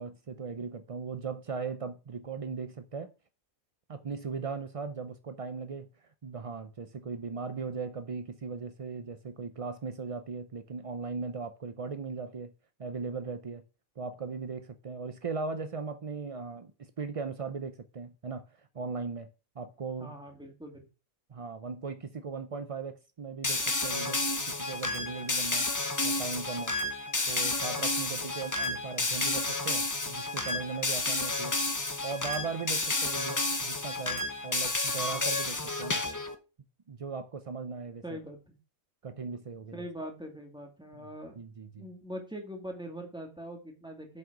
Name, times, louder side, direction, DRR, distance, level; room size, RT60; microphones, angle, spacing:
voice 1, 0.0-3.1 3.9-12.5 12.8-13.6 14.0-18.4 18.7-19.3 19.6-20.2 21.3-25.7 26.0-26.8 27.3-31.6 32.0-36.0 36.9-38.2 39.0-39.9 40.9-41.1 41.4-41.9, right 5 dB, 60° right, 0.3 m, -38 dB
voice 2, 20.0-20.9 38.0-38.5 39.7-41.4 41.8-44.2, equal, 5° right, 2.1 m, -42 dB
sound 1, 23.4-36.3, left 2 dB, 20° left, 0.6 m, -31 dB
7.7 x 5.6 x 6.0 m
omnidirectional pair, 1.4 m